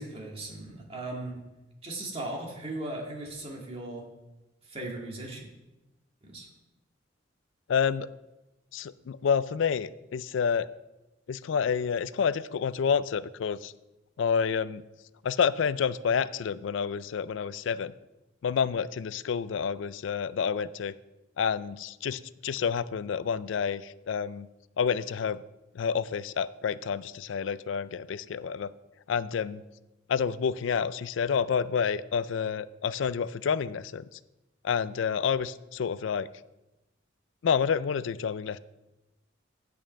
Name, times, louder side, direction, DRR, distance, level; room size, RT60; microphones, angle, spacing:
voice 1, 0.0-1.4 1.8-4.0 4.7-5.4 6.2-6.5, right 2 dB, 30° right, -1 dB, 1.9 m, -37 dB
voice 2, 7.7-8.1 8.7-10.7 11.3-13.7 14.2-14.8 15.2-17.9 18.4-20.9 21.4-24.5 24.8-25.4 25.7-28.7 29.1-29.6 30.1-34.1 34.6-36.3 37.4-38.6, left 6 dB, 75° left, 17 dB, 0.4 m, -29 dB
8.9 x 5.4 x 7.5 m, 1.0 s
head